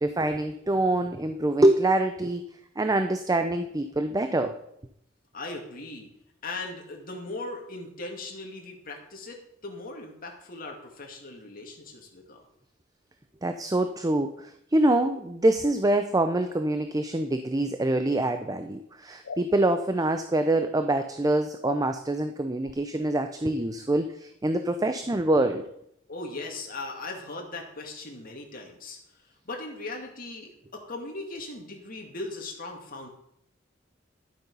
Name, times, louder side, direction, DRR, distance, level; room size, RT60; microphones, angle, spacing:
voice 1, 0.0-2.5 2.8-4.6 13.4-25.7, right 1 dB, 20° right, 8 dB, 0.5 m, -25 dB
voice 2, 5.3-6.1 6.4-12.4 26.1-29.0 29.2-33.1, left 2 dB, 45° left, 1 dB, 2.3 m, -39 dB
sound 1, 19.2-19.5 21.6-21.9 22.6-22.8, left 5 dB, 75° left, 0.6 m, -37 dB
11.5 x 7.9 x 5.5 m, 0.75 s
head